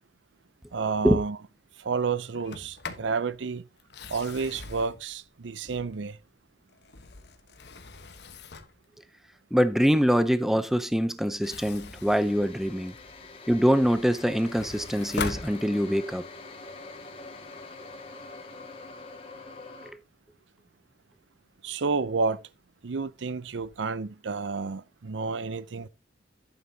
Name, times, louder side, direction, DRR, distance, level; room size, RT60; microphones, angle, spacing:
voice 1, 0.7-1.4 1.8-3.6 4.1-6.2 21.6-22.4 22.8-25.9, right 4 dB, 85° right, 0.6 m, -30 dB
Sliding door, 2.3-3.1 3.8-6.1 6.7-8.8 11.2-13.2 13.7-16.2, left 4 dB, 65° left, 1.2 m, -41 dB
voice 2, 9.5-12.9 13.5-16.2 19.8-20.0, equal, ahead, 0.6 m, -24 dB
sound 1, 12.1-19.9, left 3 dB, 30° left, 1.9 m, -45 dB
11.5 x 8.8 x 2.8 m
head